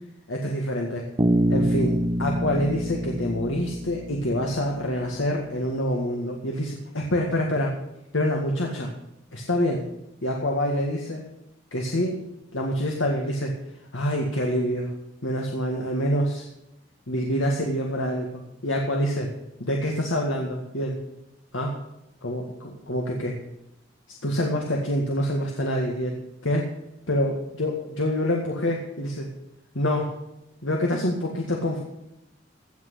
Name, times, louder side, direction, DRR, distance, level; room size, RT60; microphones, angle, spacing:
voice 1, 0.3-1.1 1.5-7.7 8.1-8.9 9.3-9.8 10.2-11.2 11.7-12.2 12.5-13.5 13.9-14.9 15.2-16.5 17.1-19.3 19.6-21.0 21.5-21.7 22.2-23.4 24.2-26.2 26.4-26.7 27.1-29.3 29.7-30.1 30.6-31.8, equal, 85° left, 0 dB, 1.9 m, -26 dB
Bass guitar, 1.2-5.1, equal, 25° right, 1.1 m, -26 dB
16.5 x 6.1 x 7.9 m, 0.88 s
head